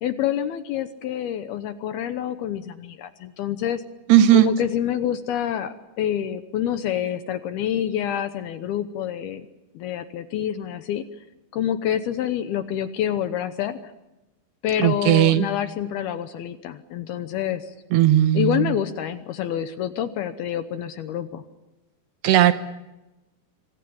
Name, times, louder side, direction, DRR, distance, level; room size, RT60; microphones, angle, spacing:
voice 1, 0.0-3.8 4.3-9.5 9.7-11.1 11.5-13.8 14.6-17.7 18.3-21.4, left 10 dB, 70° left, 10 dB, 2.5 m, -27 dB
voice 2, 4.1-4.5 14.8-15.5 17.9-18.7 22.2-22.5, right 11 dB, 75° right, 10 dB, 2.9 m, -16 dB
26.0 x 24.5 x 7.1 m, 0.99 s
omnidirectional pair, 5.3 m